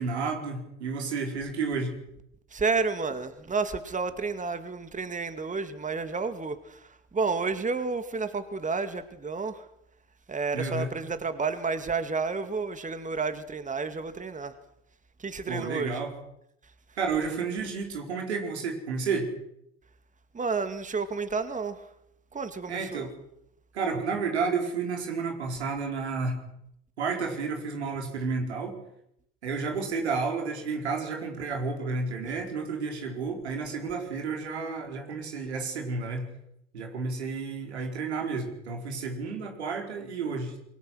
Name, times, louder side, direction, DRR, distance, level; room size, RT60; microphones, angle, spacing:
voice 1, 0.0-2.0 10.5-10.9 15.5-16.1 17.0-19.3 22.7-23.1 23.7-26.4 27.0-28.8 29.4-36.3 36.7-40.6, right 4 dB, 80° right, 4.7 m, -31 dB
voice 2, 2.5-9.7 10.3-14.6 15.2-16.0 16.6-16.7 20.3-21.9 22.3-23.1 32.2-32.3, right 4 dB, 25° right, 2.3 m, -31 dB
27.5 x 23.5 x 6.4 m
figure-of-eight pair, 60°, 32 cm